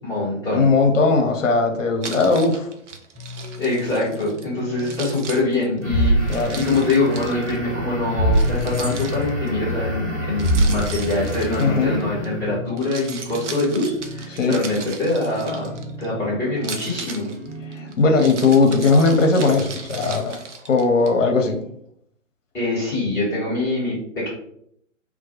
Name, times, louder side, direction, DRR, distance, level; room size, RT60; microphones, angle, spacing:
voice 1, 0.0-0.7 3.6-15.7 16.0-17.3 22.5-24.3, left 2 dB, 5° left, -10 dB, 0.7 m, -24 dB
voice 2, 0.5-2.7 6.3-6.6 11.6-12.0 14.3-14.6 17.7-20.4 20.7-21.6, left 3 dB, 70° left, 4 dB, 0.6 m, -18 dB
Keys jangling, 2.0-4.5 4.8-7.6 8.3-9.5 10.4-12.3 12.7-16.1 16.6-21.1, right 5 dB, 65° right, 0.5 m, -37 dB
sound 1, 3.1-17.9, equal, 30° right, 1.1 m, -37 dB
sound 2, 5.8-12.5, equal, 10° right, 0.4 m, -24 dB
2.2 x 2.1 x 2.8 m, 0.70 s
figure-of-eight pair, 130°, 39 cm